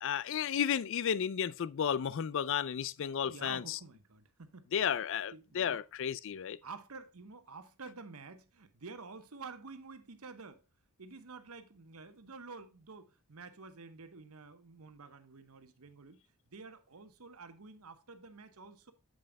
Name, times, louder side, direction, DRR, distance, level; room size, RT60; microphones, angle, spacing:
voice 1, 0.0-3.8 4.7-6.6, left 8 dB, 60° left, 0.4 m, -33 dB
voice 2, 3.2-4.7 5.3-5.8 6.6-10.6 11.0-16.2 16.5-18.9, right 4 dB, 80° right, 1.0 m, -50 dB
8.7 x 7.7 x 2.2 m
head